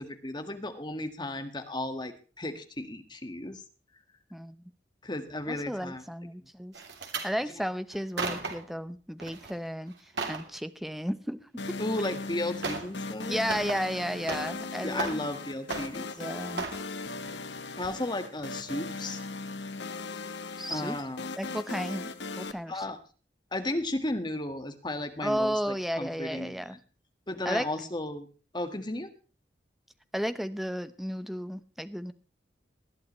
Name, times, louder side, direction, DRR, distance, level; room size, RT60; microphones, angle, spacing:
voice 1, 0.0-3.6 5.0-6.0 11.8-13.4 14.8-16.2 17.8-19.2 20.7-21.3 22.7-23.0 23.5-26.8 27.3-28.3 28.5-29.1, left 1 dB, 25° left, 7 dB, 1.7 m, -34 dB
voice 2, 5.5-6.7 7.2-9.9 10.3-11.4 11.7-11.8 13.3-15.3 16.2-16.7 20.6-21.0 21.4-22.1 22.4-22.9 25.2-26.8 27.4-27.7 30.1-32.1, equal, ahead, 12 dB, 0.8 m, -33 dB
sound 1, 6.7-7.3 7.9-8.7 9.2-9.5 9.9-10.5 11.8-11.9 12.6-13.0 13.3-14.6 14.9-15.4 15.7-16.2 16.6-16.8 17.3-17.5 17.8-17.9, right 4 dB, 80° right, 3.1 m, -35 dB
sound 2, 11.6-22.5, left 3 dB, 75° left, 1.3 m, -38 dB
20.0 x 11.5 x 3.2 m, 0.36 s
head